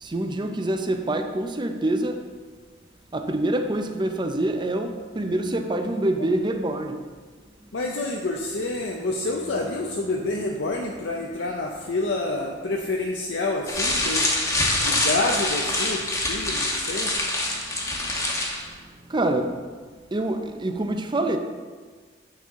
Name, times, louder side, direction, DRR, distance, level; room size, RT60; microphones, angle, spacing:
voice 1, 0.0-2.2 3.1-7.0 19.1-19.6 20.1-21.4, right 1 dB, 25° right, 6 dB, 0.6 m, -26 dB
voice 2, 7.7-14.3 14.8-17.1, left 2 dB, 70° left, 0 dB, 0.6 m, -28 dB
sound 1, 13.7-18.7, left 2 dB, 15° left, 1.1 m, -25 dB
8.8 x 5.5 x 3.6 m, 1.5 s
head